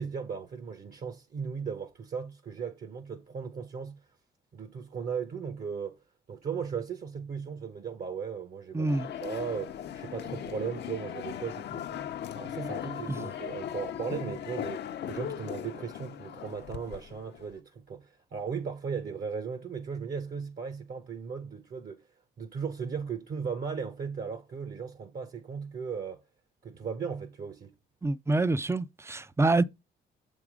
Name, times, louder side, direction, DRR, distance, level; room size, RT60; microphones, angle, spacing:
voice 1, 0.0-3.9 4.5-6.0 6.3-12.0 12.3-22.0 22.4-26.2 26.6-27.7, right 6 dB, 50° right, 1.0 m, -37 dB
voice 2, 8.7-9.1 13.1-13.3 28.0-29.6, right 2 dB, 15° right, 0.4 m, -26 dB
sound 1, 8.9-17.5, left 10 dB, 60° left, 0.6 m, -38 dB
7.1 x 3.6 x 4.9 m
cardioid pair, 90°, 20 cm